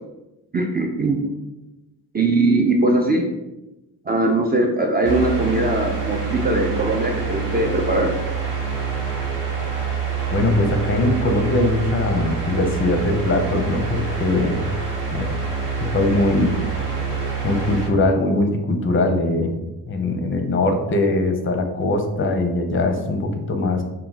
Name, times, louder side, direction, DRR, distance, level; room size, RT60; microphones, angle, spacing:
voice 1, 0.5-1.3 2.1-3.3 4.1-8.2, right 2 dB, 25° right, 1 dB, 0.3 m, -20 dB
sound 1, 5.0-17.9, right 5 dB, 60° right, 1.1 m, -26 dB
voice 2, 10.3-14.6 15.1-15.4 15.9-16.6 17.4-19.6 19.9-23.8, left 2 dB, 30° left, 5 dB, 0.5 m, -21 dB
2.2 x 2.1 x 3.9 m, 1.0 s
supercardioid pair, 50°, 46 cm